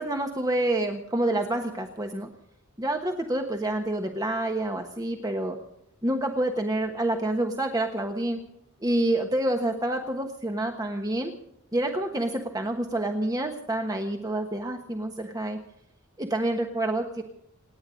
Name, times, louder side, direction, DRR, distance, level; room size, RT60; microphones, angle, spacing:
voice 1, 0.0-2.3 2.8-5.6 6.0-8.4 8.8-11.3 11.7-15.6 16.2-17.2, right 1 dB, 20° right, 4 dB, 1.3 m, -28 dB
27.5 x 10.0 x 5.1 m, 0.76 s
head